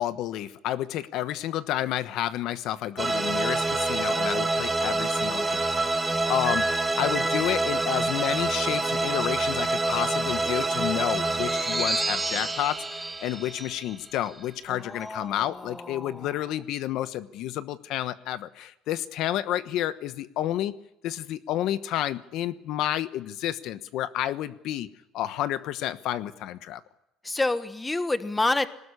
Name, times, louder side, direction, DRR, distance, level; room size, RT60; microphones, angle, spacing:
voice 1, 0.0-5.7 6.0-12.8 13.2-20.7 21.0-24.9 25.1-26.8, left 12 dB, 70° left, 13 dB, 1.1 m, -30 dB
sound 1, 3.0-14.4, right 2 dB, 15° right, 1.9 m, -27 dB
voice 2, 14.7-16.3 27.2-28.7, left 2 dB, 10° left, 12 dB, 1.3 m, -29 dB
22.5 x 19.5 x 9.9 m, 0.89 s
cardioid pair, 135°, 0 cm